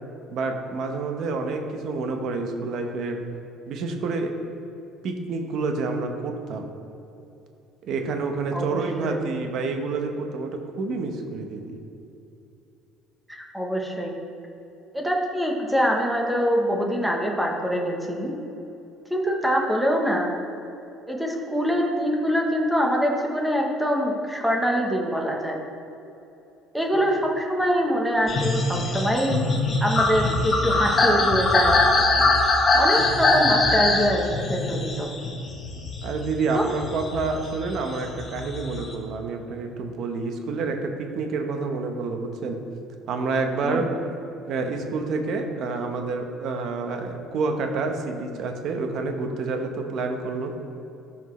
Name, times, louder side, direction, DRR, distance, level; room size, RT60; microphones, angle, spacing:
voice 1, 0.3-3.2 3.7-4.3 5.0-6.7 7.8-10.5 10.8-11.8 26.9-27.0 36.0-42.6 43.1-43.9 44.4-50.5, right 3 dB, 50° right, 4 dB, 0.9 m, -28 dB
voice 2, 8.5-9.3 13.3-14.1 14.9-18.3 19.1-20.3 21.1-25.6 26.7-29.4 29.8-31.8 32.7-34.2 34.5-35.1 36.5-36.6 43.6-43.8, equal, 5° right, 0 dB, 0.9 m, -24 dB
sound 1, 28.3-36.3 36.7-38.9, left 2 dB, 25° left, 1.0 m, -22 dB
13.5 x 5.9 x 3.2 m, 2.8 s
cardioid pair, 165°, 0 cm